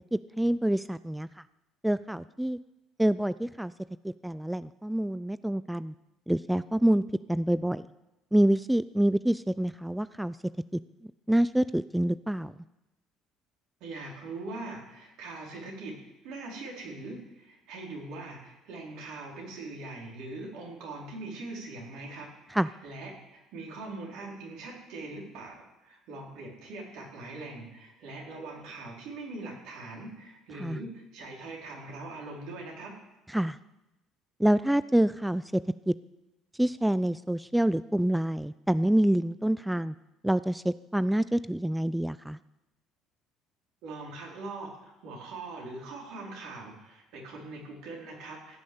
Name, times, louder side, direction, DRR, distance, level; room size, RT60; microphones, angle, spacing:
voice 1, 0.1-1.4 1.8-2.6 3.0-3.7 4.0-5.9 6.3-7.0 7.3-7.9 8.3-10.4 10.7-12.5 22.5-22.7 30.5-30.8 33.3-33.6 34.4-35.6 35.9-36.0 36.5-39.9 40.2-42.4, right 1 dB, 5° right, 16 dB, 0.4 m, -27 dB
voice 2, 13.8-16.0 16.2-32.9 43.8-48.6, right 2 dB, 70° right, -1 dB, 4.2 m, -42 dB
15.5 x 6.3 x 8.6 m, 0.95 s
hypercardioid pair, 65°, 0 cm